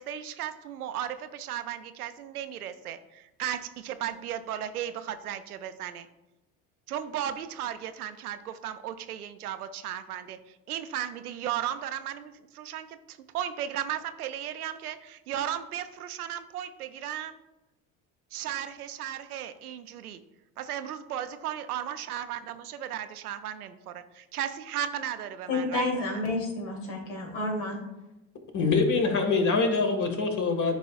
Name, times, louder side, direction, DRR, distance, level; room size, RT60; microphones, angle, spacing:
voice 1, 0.0-6.1 6.9-10.4 10.7-17.4 18.3-20.2 20.6-26.1, right 10 dB, 90° right, 11 dB, 0.5 m, -35 dB
voice 2, 25.5-27.8, left 2 dB, 75° left, 0 dB, 1.9 m, -30 dB
voice 3, 28.5-30.8, left 4 dB, 40° left, 4 dB, 1.6 m, -24 dB
11.0 x 4.8 x 2.3 m, 0.97 s
hypercardioid pair, 60°, 43 cm